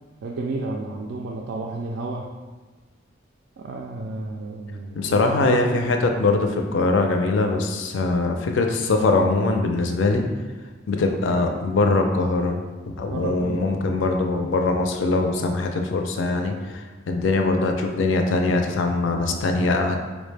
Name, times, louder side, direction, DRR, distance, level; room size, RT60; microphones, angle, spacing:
voice 1, 0.2-2.3 3.6-5.8 13.1-13.9, right 3 dB, 65° right, -1 dB, 0.3 m, -31 dB
voice 2, 5.0-10.2 10.9-12.6 12.9-20.0, left 3 dB, 70° left, 4 dB, 0.4 m, -22 dB
4.7 x 2.1 x 3.3 m, 1.3 s
head